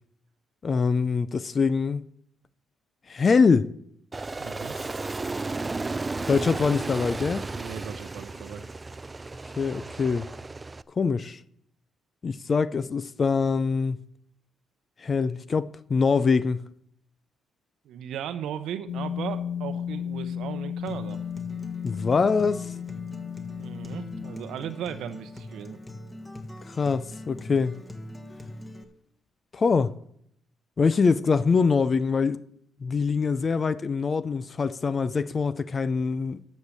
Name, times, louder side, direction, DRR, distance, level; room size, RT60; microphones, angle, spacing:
voice 1, 0.6-2.0 3.1-3.7 6.3-7.4 9.6-10.3 11.0-11.4 12.2-14.0 15.0-16.6 21.8-22.7 26.7-27.8 29.5-29.9 30.8-32.4 32.8-36.5, left 5 dB, 40° left, 0.4 m, -24 dB
Aircraft, 4.1-10.8, right 3 dB, 20° right, 0.4 m, -34 dB
voice 2, 4.4-4.7 7.5-8.6 17.8-21.2 23.6-25.8, right 9 dB, 80° right, 0.8 m, -37 dB
sound 1, 18.9-24.3, left 8 dB, 85° left, 0.6 m, -34 dB
Acoustic guitar, 20.8-28.8, left 1 dB, 15° left, 1.5 m, -42 dB
12.0 x 6.4 x 7.2 m
cardioid pair, 90°, 0 cm